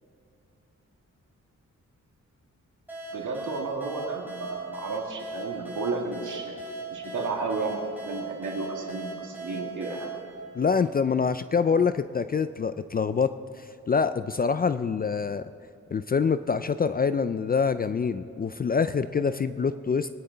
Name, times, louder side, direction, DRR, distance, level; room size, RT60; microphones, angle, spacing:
sound 1, 2.9-11.3, right 3 dB, 5° right, 3.8 m, -39 dB
voice 1, 3.1-6.5 6.9-10.1, right 3 dB, 80° right, 0 dB, 2.2 m, -33 dB
voice 2, 10.5-15.5 15.9-20.1, left 5 dB, 30° left, 12 dB, 0.4 m, -25 dB
22.0 x 9.8 x 4.0 m, 2.7 s
wide cardioid pair, 100°, 30 cm